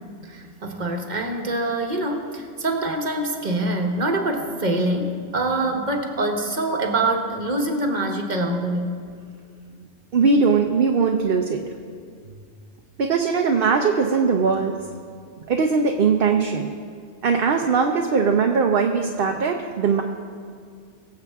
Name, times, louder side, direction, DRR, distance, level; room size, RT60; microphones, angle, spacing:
voice 1, 0.2-9.0, right 2 dB, 40° right, 3 dB, 1.3 m, -25 dB
voice 2, 10.1-11.6 13.0-14.8 15.5-16.7 17.2-20.0, right 5 dB, 55° right, 2 dB, 0.9 m, -20 dB
23.0 x 7.9 x 3.6 m, 2.1 s
omnidirectional pair, 1.2 m